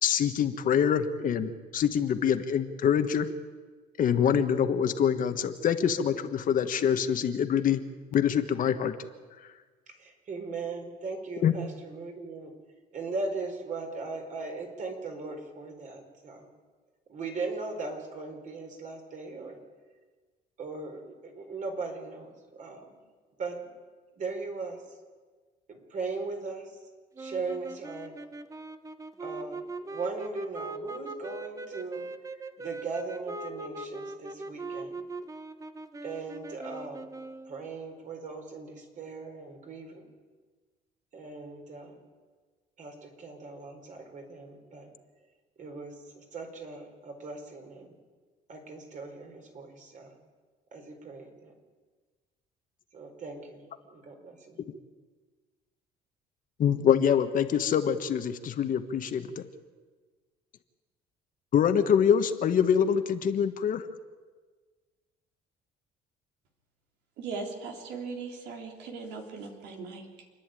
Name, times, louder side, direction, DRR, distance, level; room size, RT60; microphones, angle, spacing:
voice 1, 0.0-3.3 4.0-7.8 8.1-8.9 11.4-11.6 56.6-59.5 61.5-63.9, left 8 dB, 55° left, 8 dB, 1.5 m, -25 dB
voice 2, 9.9-12.5 12.9-16.5 17.1-19.6 20.6-23.0 23.4-23.6 24.1-25.0 25.7-26.8 27.2-28.1 29.2-32.1 32.6-35.0 36.0-37.1 37.4-40.1 41.1-42.0 42.8-44.9 45.6-48.0 48.5-50.2 50.7-51.5 52.9-54.6, right 3 dB, 50° right, 3 dB, 4.7 m, -39 dB
sound 1, 27.2-37.6, right 2 dB, 20° right, 1.1 m, -41 dB
voice 3, 67.2-70.3, right 4 dB, 85° right, 2 dB, 3.5 m, -39 dB
28.0 x 10.5 x 9.1 m, 1.4 s
cardioid pair, 110°, 17 cm